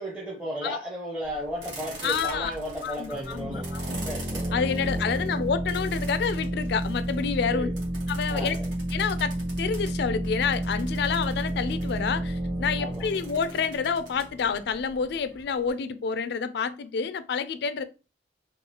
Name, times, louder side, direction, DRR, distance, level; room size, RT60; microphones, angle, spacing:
voice 1, 0.0-4.6 7.5-7.8 8.2-8.7 12.8-13.1, equal, 10° right, 0.6 m, -35 dB
sound 1, 1.2-15.7, right 2 dB, 75° right, 1.4 m, -45 dB
voice 2, 2.0-2.5 2.8-4.0 4.5-7.7 8.1-8.6 8.9-17.8, left 6 dB, 60° left, 0.3 m, -28 dB
sound 2, 3.1-14.6, right 1 dB, 40° right, 1.3 m, -31 dB
3.8 x 2.3 x 2.9 m
head